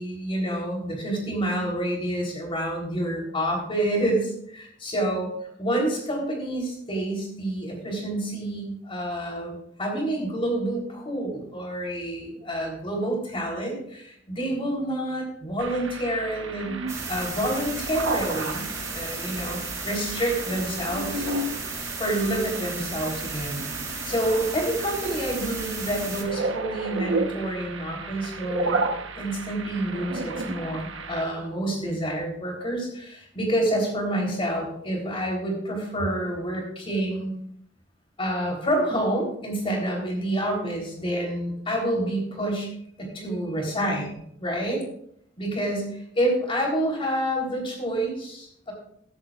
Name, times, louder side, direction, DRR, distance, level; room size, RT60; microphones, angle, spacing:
voice 1, 0.0-5.3 5.6-16.8 17.1-18.7 18.9-19.6 19.8-21.3 22.0-23.6 24.0-28.8 29.2-37.3 38.2-42.7 43.0-44.8 45.4-45.9 46.2-48.7, right 1 dB, 30° left, 0 dB, 3.7 m, -28 dB
sound 1, 15.6-31.2, right 3 dB, 90° right, 1.1 m, -33 dB
sound 2, 16.9-26.2, right 3 dB, 15° right, 1.6 m, -35 dB
15.0 x 11.0 x 2.5 m, 0.69 s
head